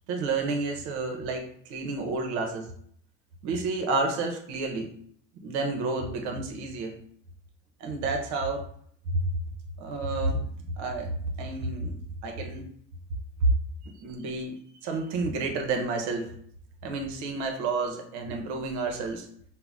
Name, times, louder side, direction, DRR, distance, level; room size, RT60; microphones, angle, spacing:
voice 1, 0.1-2.7 3.4-4.9 5.4-6.9 7.8-8.6 9.1-9.2 9.8-10.4 10.8-11.1 11.4-11.9 12.2-12.7 13.4-13.5 13.8-16.3 16.8-19.2, right 3 dB, 65° right, 3 dB, 1.0 m, -30 dB
5.7 x 2.2 x 3.6 m, 0.64 s
cardioid pair, 155°, 29 cm